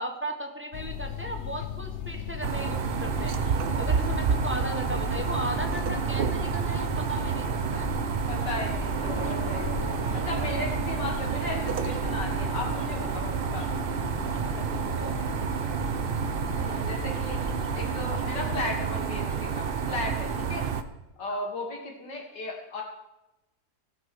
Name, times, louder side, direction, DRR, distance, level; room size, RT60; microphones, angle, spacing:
voice 1, 0.0-3.3 3.8-7.9 14.5-15.1 21.3-21.4, right 1 dB, 10° right, 4 dB, 1.1 m, -36 dB
sound 1, 0.7-18.6, left 7 dB, 50° left, 0.9 m, -38 dB
sound 2, 2.4-20.8, right 6 dB, 55° right, 0.6 m, -29 dB
voice 2, 4.5-4.9 8.3-9.8 10.1-13.7 16.6-17.4 17.7-20.6 21.2-22.8, left 2 dB, 90° left, 1 dB, 3.1 m, -36 dB
Gong, 9.0-19.8, left 2 dB, 15° left, 1.5 m, -43 dB
16.0 x 6.8 x 6.3 m, 0.97 s
omnidirectional pair, 1.8 m